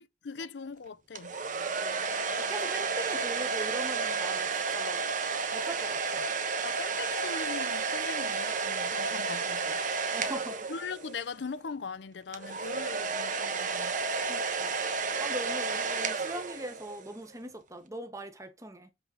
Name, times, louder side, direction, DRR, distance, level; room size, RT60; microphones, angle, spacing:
voice 1, 0.0-1.4 6.6-9.8 10.7-14.0, left 5 dB, 70° left, 0.6 m, -40 dB
sound 1, 1.2-11.3 12.3-17.1, right 4 dB, 45° right, 1.0 m, -32 dB
voice 2, 2.4-5.0 5.5-6.4 10.1-10.7 14.3-14.8 15.2-18.9, right 1 dB, 15° right, 1.1 m, -41 dB
8.0 x 3.9 x 4.0 m
head